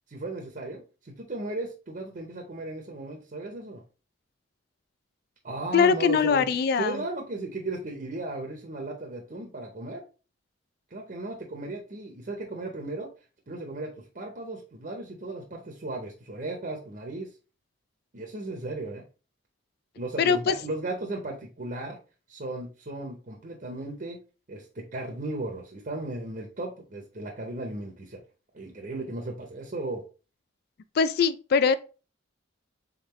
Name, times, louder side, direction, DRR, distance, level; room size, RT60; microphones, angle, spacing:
voice 1, 0.1-3.8 5.4-6.5 6.8-10.0 10.9-13.1 13.5-17.3 18.1-19.0 20.0-22.0 22.3-24.2 24.5-28.2 28.5-30.0, right 2 dB, 45° right, 0.7 m, -36 dB
voice 2, 5.7-7.0 20.2-20.5 31.0-31.7, left 6 dB, 55° left, 0.3 m, -22 dB
3.7 x 3.5 x 2.9 m
head